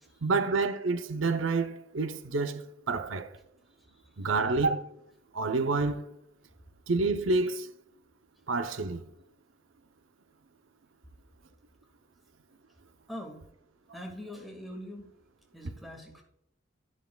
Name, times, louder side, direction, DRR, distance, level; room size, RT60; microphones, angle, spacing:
voice 1, 0.2-3.3 4.2-4.9 5.3-6.0 6.9-7.7 8.5-9.0, right 3 dB, 90° right, 0.7 m, -28 dB
voice 2, 13.1-13.4 13.9-15.1 15.5-16.2, left 1 dB, ahead, 1.8 m, -43 dB
11.5 x 10.5 x 2.3 m
head